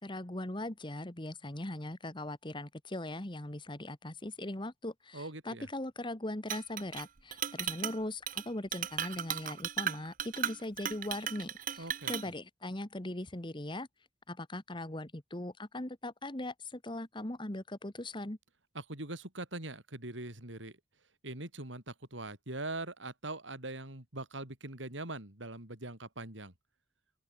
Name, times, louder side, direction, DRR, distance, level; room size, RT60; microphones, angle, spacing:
voice 1, 0.0-13.9 14.3-18.4, left 1 dB, 25° left, 1.6 m, -40 dB
voice 2, 5.1-5.7 11.8-12.1 18.7-20.8 21.2-26.5, right 2 dB, 75° right, 5.5 m, -42 dB
Chink clink, 6.5-7.0 7.3-8.0 8.3-8.4 8.7-12.3, right 9 dB, 45° right, 0.9 m, -36 dB
open air
head